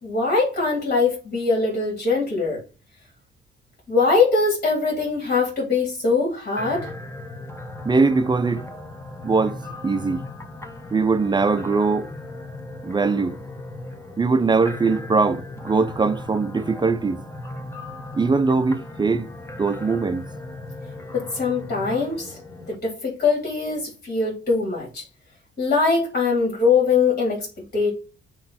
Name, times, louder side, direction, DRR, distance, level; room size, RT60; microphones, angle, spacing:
voice 1, 0.0-2.6 3.9-6.9 21.1-22.4 22.7-25.0 25.6-27.9, left 4 dB, 45° left, 3.3 m, -22 dB
sound 1, 6.6-22.8, left 2 dB, 15° left, 1.2 m, -37 dB
voice 2, 7.9-8.7 9.2-9.6 9.8-10.2 10.9-12.1 12.8-13.4 14.2-17.2 18.1-19.3 19.6-20.3, right 4 dB, 20° right, 0.6 m, -21 dB
8.4 x 3.2 x 4.3 m
cardioid pair, 90°, 20 cm